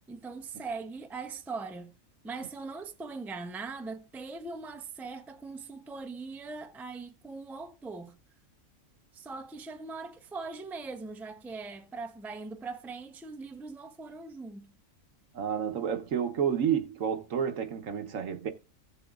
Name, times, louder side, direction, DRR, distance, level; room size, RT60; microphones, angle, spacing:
voice 1, 0.1-1.9 2.2-8.2 9.1-14.7, right 4 dB, ahead, 0.5 m, -41 dB
voice 2, 15.3-18.5, right 8 dB, 75° right, 1.4 m, -30 dB
16.5 x 6.9 x 2.4 m
omnidirectional pair, 1.4 m